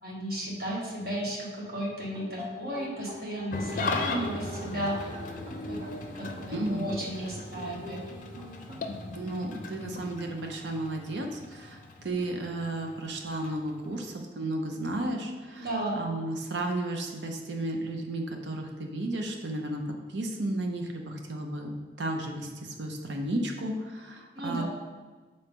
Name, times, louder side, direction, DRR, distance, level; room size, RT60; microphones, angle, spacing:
voice 1, 0.0-5.1 5.7-5.9 6.1-8.0 15.6-16.0 24.3-24.6, right 1 dB, 55° right, -4 dB, 1.4 m, -34 dB
sound 1, 2.1-8.9, left 1 dB, 35° right, 0.9 m, -44 dB
Engine starting / Idling, 3.5-14.1, left 3 dB, 45° left, 0.5 m, -38 dB
voice 2, 6.5-6.9 9.2-15.7 16.0-24.6, right 1 dB, 75° right, 3 dB, 0.7 m, -33 dB
6.9 x 3.9 x 3.6 m, 1.4 s
head